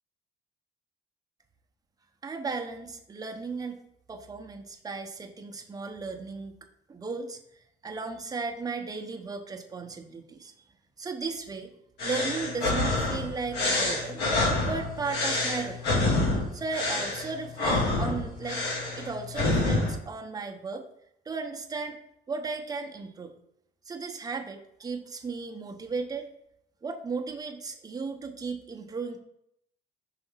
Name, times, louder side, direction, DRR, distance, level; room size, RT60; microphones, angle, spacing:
voice 1, 2.2-3.8 4.1-6.5 6.9-7.4 7.8-10.5 11.0-11.7 12.0-16.1 16.5-18.6 19.0-20.8 21.2-22.0 22.3-23.3 23.9-26.3 26.8-29.2, right 4 dB, 20° right, 4 dB, 0.8 m, -35 dB
sound 1, 12.0-19.9, left 2 dB, 80° left, 2.0 m, -27 dB
5.8 x 3.5 x 5.5 m, 0.77 s
cardioid pair, 110°, 17 cm